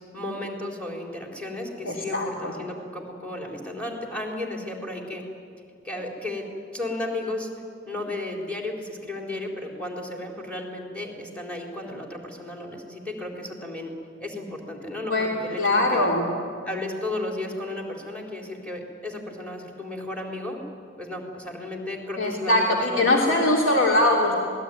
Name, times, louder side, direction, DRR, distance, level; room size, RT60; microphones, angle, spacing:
voice 1, 0.1-5.2 5.8-6.4 6.7-7.5 7.9-13.9 14.2-16.1 16.6-20.6 21.0-23.1, left 1 dB, 5° left, 0 dB, 4.2 m, -34 dB
voice 2, 1.8-2.5 15.1-15.3 15.6-16.2 22.2-24.3, left 1 dB, 80° left, -2 dB, 3.1 m, -21 dB
27.0 x 20.5 x 9.4 m, 2.3 s
head